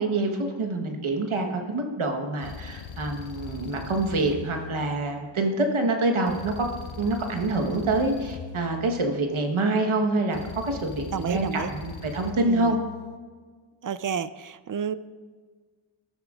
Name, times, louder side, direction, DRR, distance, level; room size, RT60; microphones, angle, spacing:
voice 1, 0.0-6.7 7.0-12.8, right 2 dB, 75° right, 3 dB, 1.3 m, -26 dB
sound 1, 2.4-5.5 6.3-9.5 10.3-13.2, left 6 dB, 75° left, 0.8 m, -40 dB
voice 2, 11.1-11.7 12.5-12.8 13.8-15.0, right 7 dB, 45° right, 15 dB, 0.5 m, -30 dB
12.5 x 9.9 x 2.4 m, 1.5 s
cardioid pair, 50°, 49 cm